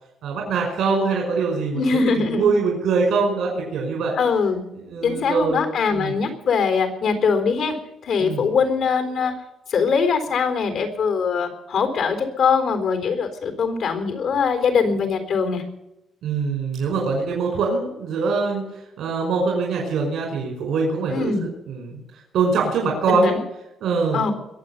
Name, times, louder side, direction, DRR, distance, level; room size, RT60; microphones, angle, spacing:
voice 1, 0.2-4.2 4.8-5.7 5.9-6.2 8.2-8.4 16.2-21.3 21.7-23.3 23.8-24.2, right 4 dB, 75° right, 0 dB, 5.3 m, -23 dB
voice 2, 1.7-2.5 4.2-4.6 5.0-7.8 8.0-9.3 9.7-15.6 21.1-21.4 23.1-23.4 24.1-24.3, left 5 dB, 70° left, 6 dB, 4.0 m, -22 dB
22.0 x 7.6 x 8.4 m, 0.89 s
cardioid pair, 90°, 0 cm